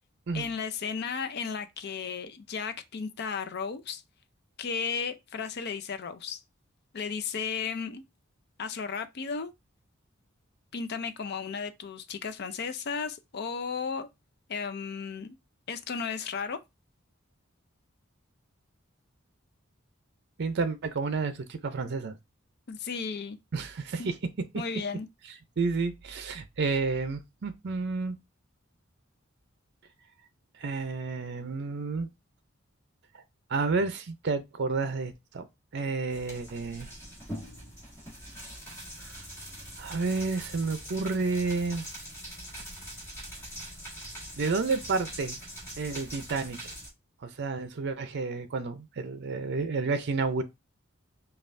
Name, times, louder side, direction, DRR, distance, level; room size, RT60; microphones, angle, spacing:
voice 1, 0.3-4.0 4.6-6.4 6.9-8.0 8.6-9.5 10.7-14.1 14.5-15.4 15.7-16.6 22.7-23.4 24.0-24.1 24.5-25.1, left 5 dB, 55° left, 0.5 m, -34 dB
voice 2, 20.4-22.1 23.5-24.1 25.6-28.2 30.6-32.1 33.5-35.5 35.7-36.9 39.1-39.2 39.8-41.9 44.4-45.4 45.8-46.6 47.2-50.4, right 4 dB, 55° right, 0.5 m, -30 dB
sound 1, 36.1-46.9, equal, 15° left, 1.7 m, -43 dB
5.3 x 2.4 x 2.5 m
head